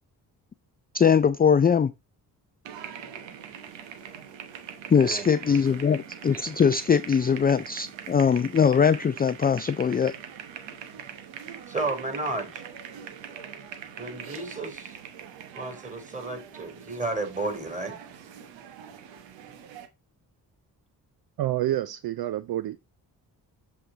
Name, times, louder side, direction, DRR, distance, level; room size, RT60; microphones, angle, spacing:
voice 1, 0.9-1.9 4.9-10.1, left 6 dB, 20° left, 0.4 m, -21 dB
sound 1, 2.6-19.9, right 8 dB, 90° right, 1.0 m, -43 dB
voice 2, 5.0-5.3 11.7-12.6 14.0-15.0 15.5-18.0, right 3 dB, 15° right, 3.4 m, -32 dB
voice 3, 21.4-22.9, right 13 dB, 60° right, 0.5 m, -28 dB
7.5 x 3.5 x 3.8 m
supercardioid pair, 45°, 43 cm